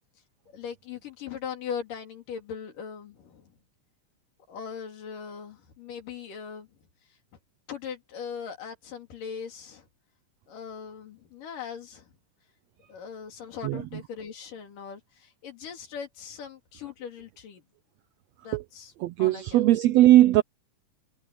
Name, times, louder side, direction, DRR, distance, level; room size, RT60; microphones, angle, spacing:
voice 1, 0.5-3.4 4.5-6.7 7.7-9.9 10.5-12.1 12.9-17.6 18.4-18.9 19.2-19.6, left 7 dB, 90° left, 4.5 m, -39 dB
voice 2, 19.0-20.4, right 14 dB, 80° right, 1.5 m, -19 dB
omnidirectional pair, 3.7 m